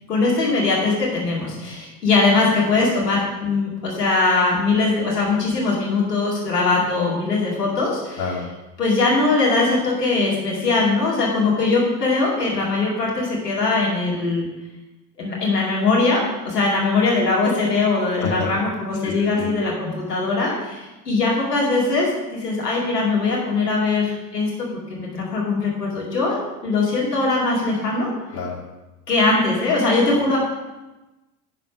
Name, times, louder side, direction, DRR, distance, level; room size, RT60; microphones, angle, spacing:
voice 1, 0.1-8.4 8.8-14.4 15.2-28.1 29.1-30.4, left 3 dB, 80° left, -4 dB, 2.4 m, -21 dB
voice 2, 8.2-8.4 18.2-18.5 19.4-19.5 28.3-28.6, left 5 dB, 45° left, 1 dB, 2.1 m, -26 dB
11.0 x 4.2 x 5.8 m, 1.1 s
figure-of-eight pair, 65°, 47 cm